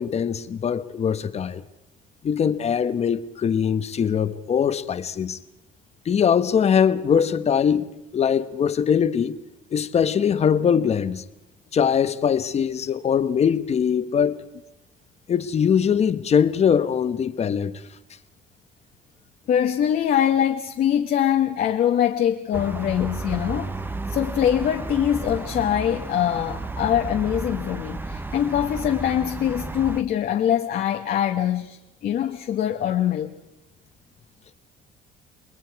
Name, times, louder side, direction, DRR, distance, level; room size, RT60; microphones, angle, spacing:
voice 1, 0.0-1.6 2.2-5.4 6.1-7.9 8.1-9.4 9.7-11.2 11.7-14.4 15.3-17.8, left 7 dB, 40° left, 1.0 m, -22 dB
voice 2, 19.5-23.7 24.1-33.3, left 10 dB, 60° left, 1.2 m, -23 dB
sound 1, 22.5-30.0, right 3 dB, 10° right, 0.9 m, -33 dB
29.0 x 21.0 x 4.7 m
cardioid pair, 110°, 17 cm